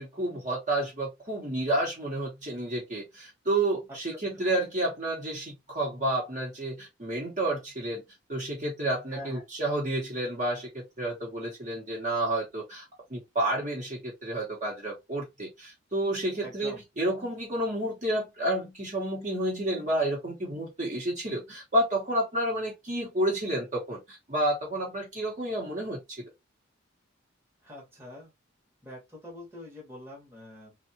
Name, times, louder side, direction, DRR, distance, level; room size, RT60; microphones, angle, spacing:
voice 1, 0.0-8.0 8.3-26.2, right 1 dB, 35° right, 0.9 m, -30 dB
voice 2, 9.1-9.4 16.4-16.8 27.6-28.3 28.8-30.8, left 1 dB, 10° right, 1.0 m, -44 dB
2.7 x 2.3 x 2.7 m
head